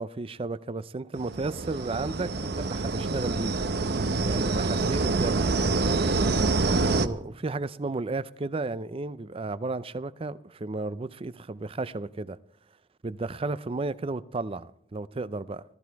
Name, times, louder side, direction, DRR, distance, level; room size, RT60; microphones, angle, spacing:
voice 1, 0.0-3.6 4.2-5.5 6.8-12.4 13.0-15.6, right 3 dB, 30° right, 0.5 m, -33 dB
sound 1, 1.2-7.1, right 3 dB, 60° right, 0.7 m, -26 dB
14.0 x 13.5 x 4.6 m
head